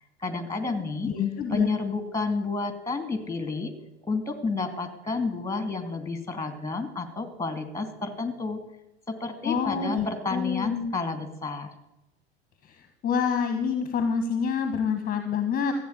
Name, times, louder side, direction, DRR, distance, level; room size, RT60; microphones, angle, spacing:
voice 1, 0.2-1.1 1.5-3.7 4.1-8.6 9.1-11.7, left 3 dB, 10° left, 8 dB, 2.5 m, -30 dB
voice 2, 1.0-1.7 9.4-10.9 12.6-15.7, left 6 dB, 30° left, 7 dB, 1.5 m, -27 dB
14.5 x 8.2 x 8.2 m, 0.91 s
figure-of-eight pair, 75°, 31 cm